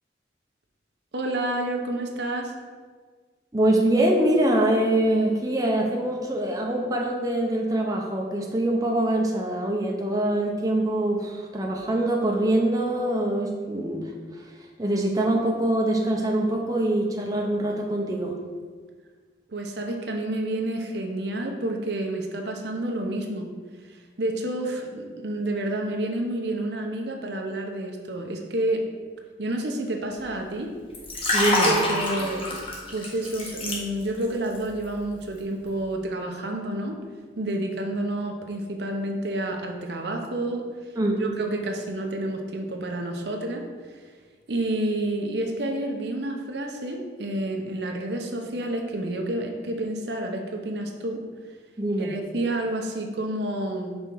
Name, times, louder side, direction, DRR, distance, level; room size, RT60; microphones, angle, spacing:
voice 1, 1.1-2.5 19.5-23.5 24.2-28.9 29.4-30.7 31.6-32.5 32.9-37.0 37.4-40.7 41.2-43.6 43.9-44.0 44.5-51.2 52.0-54.0, right 1 dB, 70° right, 3 dB, 0.8 m, -29 dB
voice 2, 3.5-14.1 14.8-18.4 31.3-31.7 41.0-41.2 51.8-52.2, right 1 dB, 20° right, -1 dB, 0.7 m, -24 dB
Liquid, 30.9-34.3 34.6-34.8, left 1 dB, 30° left, 1.2 m, -26 dB
5.5 x 4.3 x 6.1 m, 1.6 s
head